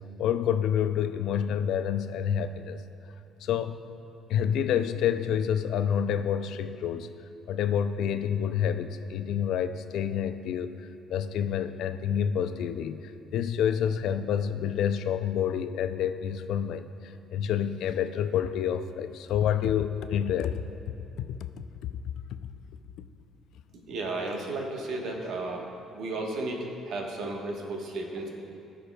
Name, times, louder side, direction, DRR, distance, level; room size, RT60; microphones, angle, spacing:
voice 1, 0.2-2.8 3.4-3.8 4.3-7.1 7.5-20.6 21.2-21.9, left 8 dB, 75° left, 10 dB, 0.3 m, -28 dB
voice 2, 23.9-25.7 25.9-28.3, right 2 dB, 70° right, 1 dB, 1.1 m, -33 dB
14.5 x 5.0 x 2.3 m, 2.7 s
supercardioid pair, 65°, 0 cm